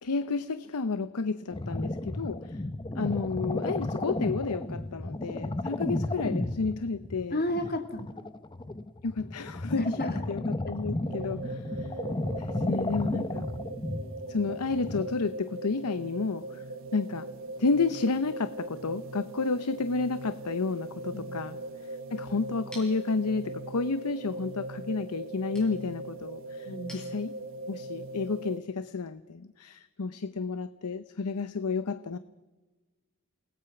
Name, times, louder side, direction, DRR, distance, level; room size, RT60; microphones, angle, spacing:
voice 1, 0.0-2.6 2.9-7.4 9.0-10.0 10.3-11.9 12.4-13.4 14.3-16.6 16.9-17.3 17.6-21.6 22.1-27.3 27.7-32.2, left 4 dB, 85° left, 13 dB, 0.7 m, -31 dB
sound 1, 1.5-15.0, left 1 dB, 20° left, 0.8 m, -33 dB
voice 2, 7.3-8.1 9.7-10.2 21.1-21.3 26.6-26.9, left 1 dB, 45° left, 6 dB, 2.2 m, -32 dB
sound 2, 11.0-28.6, right 2 dB, 60° right, 1.6 m, -40 dB
Chink clink, 22.1-27.8, equal, 5° left, 7.0 m, -54 dB
29.0 x 19.0 x 5.9 m, 1.2 s
head